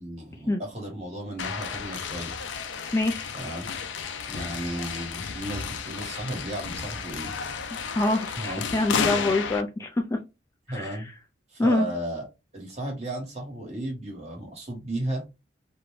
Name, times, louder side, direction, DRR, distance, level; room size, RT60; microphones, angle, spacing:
voice 1, 0.0-2.4 3.3-3.7 4.3-7.3 8.3-8.7 10.7-11.1 11.5-12.3 12.5-15.3, right 1 dB, 35° right, 1.2 m, -34 dB
sound 1, 1.4-9.6, left 6 dB, 85° left, 0.4 m, -32 dB
voice 2, 2.9-3.3 7.9-10.2 10.7-11.0 11.6-11.9, left 2 dB, 15° left, 0.3 m, -25 dB
2.5 x 2.2 x 3.1 m
head